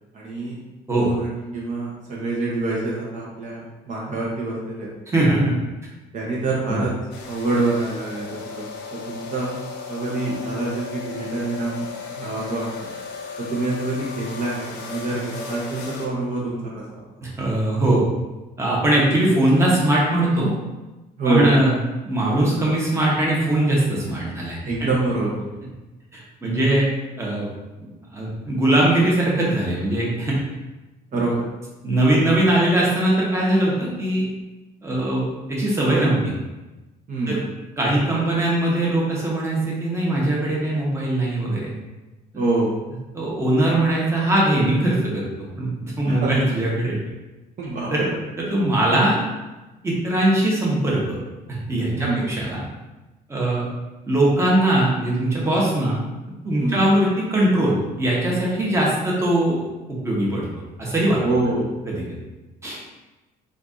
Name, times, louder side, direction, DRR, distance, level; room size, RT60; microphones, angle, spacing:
voice 1, 0.1-0.6 0.9-4.9 6.1-6.9 7.3-9.6 9.9-11.9 12.2-12.9 13.4-17.0 21.2-21.5 24.7-25.4 31.1-31.3 37.1-37.4 42.3-42.7 46.0-46.3 47.6-48.1 52.0-52.2 56.6-56.8 61.2-61.7, right 2 dB, 50° right, -4 dB, 0.8 m, -26 dB
voice 2, 5.1-5.5 6.7-6.8 17.2-18.0 18.6-20.5 21.2-21.7 22.0-24.9 26.1-26.9 27.2-27.5 28.1-30.4 31.1-31.2 31.8-34.3 34.8-36.3 37.3-37.4 37.8-41.7 43.1-47.0 47.9-48.1 48.4-49.3 49.8-51.2 51.5-52.6 53.3-53.6 54.1-56.0 56.4-60.5 60.8-61.2 61.9-62.0 62.6-62.8, right 1 dB, 15° right, -5 dB, 1.0 m, -21 dB
sound 1, 7.1-16.1, left 5 dB, 90° left, 0.6 m, -35 dB
4.4 x 2.5 x 2.6 m, 1.1 s
cardioid pair, 110°, 17 cm